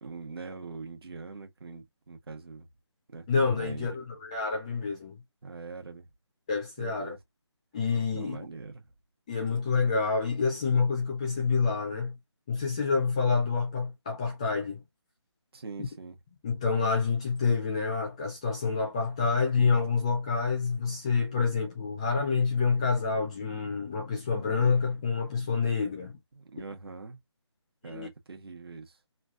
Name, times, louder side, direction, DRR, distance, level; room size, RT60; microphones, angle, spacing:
voice 1, 0.0-2.7 3.1-3.3 3.6-4.0 5.4-6.1 6.8-7.2 8.1-8.9 15.5-16.2 26.3-27.2 27.8-29.0, right 4 dB, 55° right, 1.2 m, -42 dB
voice 2, 3.3-5.2 6.5-7.2 7.7-8.4 9.3-12.2 12.5-14.8 15.8-15.9 16.4-26.2 27.8-28.1, left 5 dB, 15° left, 0.5 m, -27 dB
3.2 x 2.3 x 2.4 m
figure-of-eight pair, 160°, 15 cm